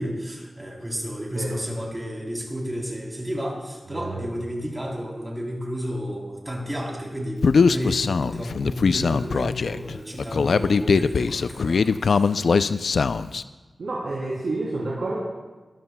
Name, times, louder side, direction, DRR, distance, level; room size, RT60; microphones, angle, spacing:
voice 1, 0.0-12.3, equal, 15° right, -2 dB, 3.4 m, -32 dB
voice 2, 3.9-4.3 13.8-15.2, right 2 dB, 80° right, -7 dB, 3.1 m, -29 dB
Human voice, 7.4-13.4, left 5 dB, 80° left, 0.3 m, -21 dB
23.0 x 13.0 x 2.2 m, 1.2 s
wide cardioid pair, 100°, 0 cm